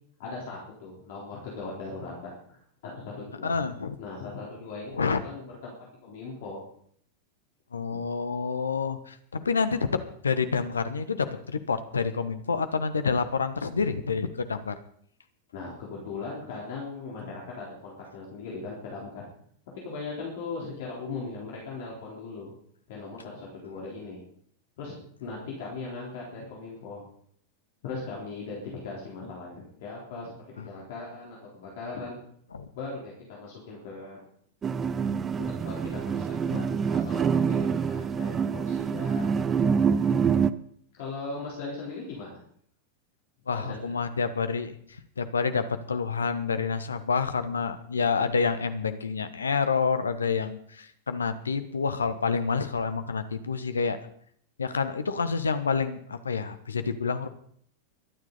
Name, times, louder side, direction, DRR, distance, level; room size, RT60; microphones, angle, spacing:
voice 1, 0.2-3.6 4.0-5.7 6.0-6.6 7.9-8.0 15.5-19.3 19.8-22.5 22.9-24.2 24.8-24.9 25.2-27.0 27.8-30.3 30.6-32.2 32.7-34.2 35.4-39.3 41.0-42.4 43.5-43.9, left 3 dB, 50° left, -4 dB, 3.7 m, -39 dB
voice 2, 3.4-3.9 4.9-5.2 7.7-14.8 30.6-30.7 32.5-32.7 36.5-36.7 43.5-54.0 54.6-57.3, left 5 dB, 75° left, 10 dB, 1.1 m, -28 dB
sound 1, 34.6-40.5, right 6 dB, 20° right, 0.6 m, -26 dB
22.5 x 9.2 x 4.0 m, 0.63 s
figure-of-eight pair, 90°, 0 cm